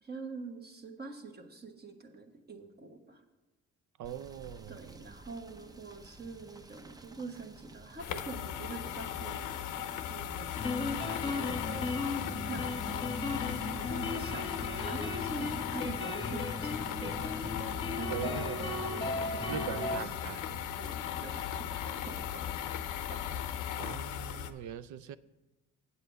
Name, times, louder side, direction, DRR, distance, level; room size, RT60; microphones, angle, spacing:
voice 1, 0.0-3.2 4.7-10.5 11.0-11.9 12.5-13.1 13.7-17.3 18.0-20.4 20.8-22.5 23.1-23.2, right 3 dB, 35° right, 1.3 m, -45 dB
Rain / Motor vehicle (road), 4.0-23.6, right 3 dB, 15° right, 0.5 m, -53 dB
voice 2, 4.0-5.0 13.8-14.2 18.1-18.7 19.5-20.6 23.8-25.2, right 10 dB, 70° right, 0.5 m, -41 dB
sound 1, 8.0-24.5, left 10 dB, 90° left, 0.6 m, -37 dB
sound 2, 10.5-20.0, left 2 dB, 20° left, 1.0 m, -36 dB
8.2 x 7.9 x 5.0 m
cardioid pair, 90°, 30 cm